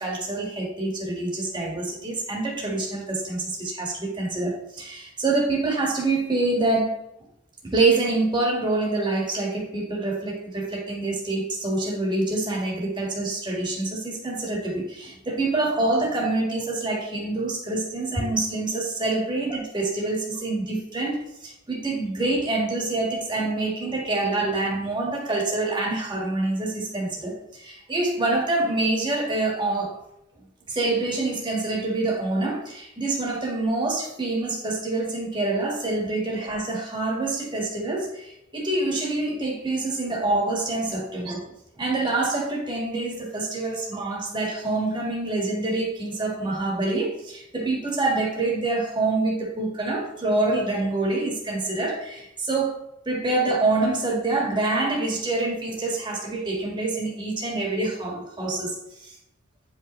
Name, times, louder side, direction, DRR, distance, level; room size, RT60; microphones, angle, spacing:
voice 1, 0.0-6.9 7.6-30.0 30.7-41.4 41.8-52.8 53.1-58.8 59.0-59.1, right 2 dB, 20° right, -2 dB, 1.8 m, -26 dB
9.3 x 5.2 x 3.1 m, 0.82 s
head